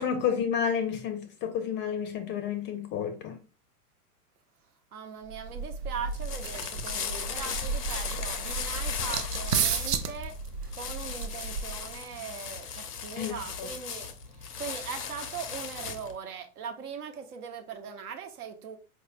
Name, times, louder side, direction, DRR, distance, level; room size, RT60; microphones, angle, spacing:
voice 1, 0.0-3.4 13.1-13.7, left 7 dB, 25° left, 0.5 m, -30 dB
voice 2, 4.9-10.4 10.7-18.8, right 6 dB, 70° right, 1.0 m, -40 dB
sound 1, 5.3-12.0, right 5 dB, 85° right, 0.6 m, -33 dB
sound 2, 5.9-16.2, left 6 dB, 90° left, 0.7 m, -37 dB
4.5 x 2.7 x 2.5 m
hypercardioid pair, 100°, 46 cm